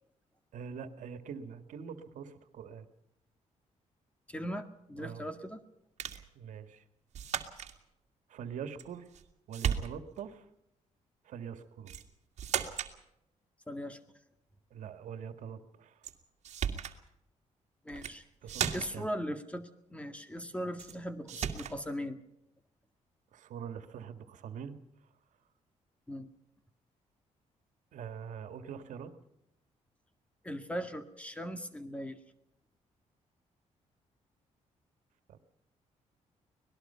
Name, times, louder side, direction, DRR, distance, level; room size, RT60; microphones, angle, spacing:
voice 1, 0.5-2.9 5.0-5.2 6.4-6.8 8.3-9.1 9.5-10.5 11.2-11.9 14.7-16.0 18.4-19.1 23.3-24.8 27.9-29.1 35.3-35.4, right 7 dB, 80° right, 9 dB, 1.9 m, -43 dB
voice 2, 4.3-5.6 13.7-14.0 17.8-22.2 26.1-26.3 30.4-32.2, equal, 10° left, 9 dB, 1.9 m, -39 dB
sound 1, 6.0-6.3 7.1-7.8 8.8-9.3 9.5-10.2 11.9-12.1 12.4-13.0 16.0-16.1 16.4-17.0 17.9-18.2 18.5-19.1 20.8-21.0 21.3-21.8, right 8 dB, 60° right, 2.2 m, -35 dB
25.0 x 19.0 x 5.7 m, 0.81 s
cardioid pair, 130°, 13 cm